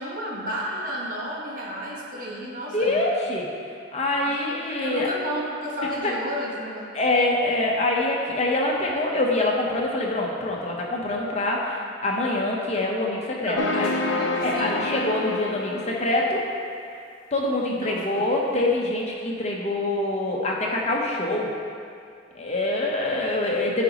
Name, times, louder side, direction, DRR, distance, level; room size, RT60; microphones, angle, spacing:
voice 1, 0.0-3.0 4.3-6.9 13.4-14.8 17.7-18.3, equal, 50° right, -4 dB, 1.2 m, -32 dB
voice 2, 2.7-3.5 3.9-5.1 6.0-6.1 6.9-13.9 14.4-16.4 17.3-21.5 22.3-23.8, left 2 dB, 35° left, -2 dB, 0.9 m, -25 dB
sound 1, 13.6-16.5, left 3 dB, 80° left, 0.5 m, -28 dB
10.0 x 5.1 x 3.0 m, 2.3 s
head